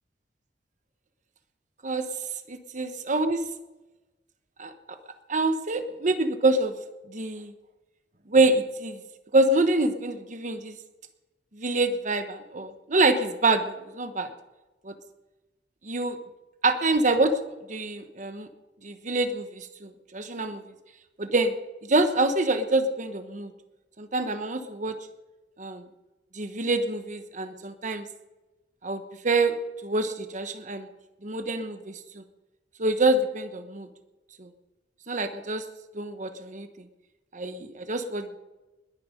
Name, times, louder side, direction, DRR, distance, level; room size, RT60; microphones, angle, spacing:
voice 1, 2.5-3.4 4.6-4.7 5.3-6.7 7.1-7.5 8.3-9.0 9.3-10.7 11.5-14.3 14.8-14.9 15.8-16.2 16.6-17.3 17.7-18.5 18.8-20.6 21.2-21.5 21.8-23.5 24.0-24.9 25.6-25.8 26.3-28.0 28.8-30.9 31.2-32.2 32.8-33.9 34.4-34.5 35.1-35.6 35.9-36.9 37.3-38.4, right 2 dB, 45° right, 9 dB, 1.1 m, -26 dB
21.0 x 10.5 x 5.1 m, 1.1 s
head